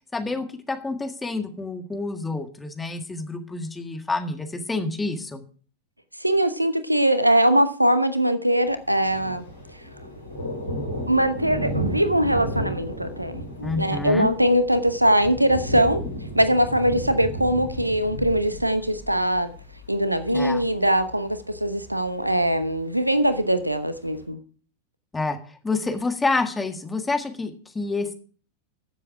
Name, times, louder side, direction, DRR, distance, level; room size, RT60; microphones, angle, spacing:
voice 1, 0.1-5.4 13.6-14.3 20.3-20.6 25.1-28.1, left 3 dB, 10° left, 1.7 m, -28 dB
voice 2, 6.2-9.4 11.1-16.0 16.3-19.5 19.9-24.4, right 1 dB, 85° right, 1.0 m, -22 dB
Thunder, 8.7-24.2, equal, 85° left, 3.7 m, -34 dB
13.5 x 7.6 x 4.8 m
figure-of-eight pair, 90°, 0 cm